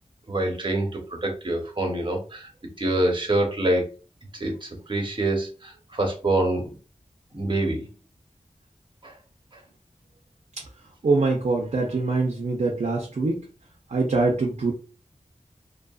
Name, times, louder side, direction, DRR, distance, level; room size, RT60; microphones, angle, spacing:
voice 1, 0.3-2.5 2.8-3.9 4.4-6.7 7.3-7.9 9.0-9.1, right 1 dB, 35° right, 1 dB, 1.0 m, -26 dB
voice 2, 11.0-13.4 13.9-14.7, right 3 dB, 60° right, -1 dB, 0.5 m, -23 dB
2.7 x 2.4 x 2.3 m, 0.35 s
wide cardioid pair, 70°, 13 cm